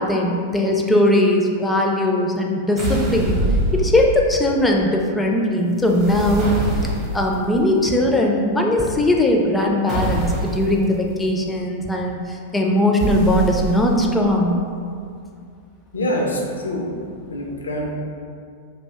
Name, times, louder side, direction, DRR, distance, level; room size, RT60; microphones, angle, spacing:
voice 1, 0.0-3.4 3.7-6.5 7.1-14.6, left 1 dB, 10° left, 0 dB, 0.4 m, -19 dB
sound 1, 2.8-4.4 5.8-7.3 9.9-10.7 13.0-14.1, right 1 dB, 35° right, 0.7 m, -24 dB
voice 2, 15.9-17.0 17.3-17.9, equal, 80° left, 0 dB, 0.4 m, -25 dB
2.5 x 2.1 x 3.5 m, 2.3 s
figure-of-eight pair, 100°, 0 cm